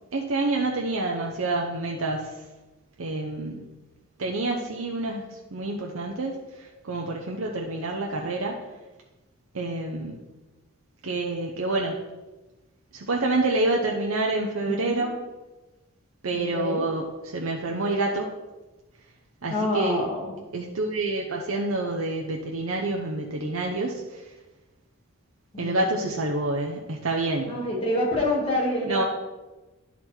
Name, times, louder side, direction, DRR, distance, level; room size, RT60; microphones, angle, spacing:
voice 1, 0.1-2.4 3.0-3.6 4.2-8.6 9.5-10.2 11.0-12.0 12.9-15.1 16.2-18.3 19.4-20.0 20.5-24.3 25.6-27.5 28.9-29.0, right 2 dB, 80° right, 0 dB, 0.8 m, -28 dB
voice 2, 14.7-15.1 16.3-16.8 19.5-20.3 25.5-26.0 27.5-29.1, left 1 dB, 25° left, -4 dB, 2.2 m, -27 dB
10.5 x 4.2 x 4.4 m, 1.1 s
head